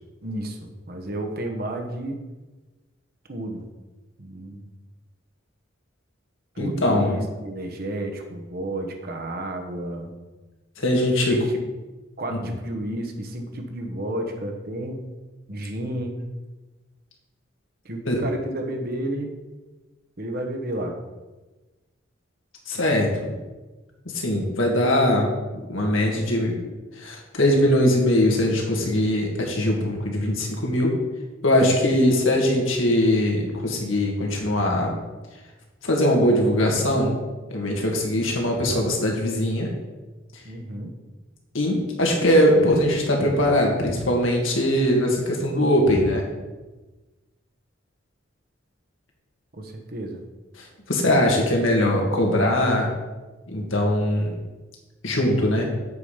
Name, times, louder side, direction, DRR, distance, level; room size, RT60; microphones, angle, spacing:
voice 1, 0.2-2.2 3.3-3.7 4.2-4.6 6.5-10.1 11.3-11.6 12.2-15.1 15.5-16.2 17.8-19.3 20.2-21.0 40.4-40.9 49.5-50.2, right 1 dB, 50° right, 4 dB, 1.2 m, -31 dB
voice 2, 6.6-7.2 10.8-11.3 18.1-18.2 22.7-23.1 24.1-25.3 25.7-26.5 26.9-30.9 31.4-35.0 35.8-37.1 37.5-39.7 41.5-46.2 50.6-52.9 53.5-54.4 55.0-55.7, left 1 dB, 80° left, 0 dB, 1.9 m, -21 dB
8.3 x 5.1 x 5.6 m, 1.2 s
head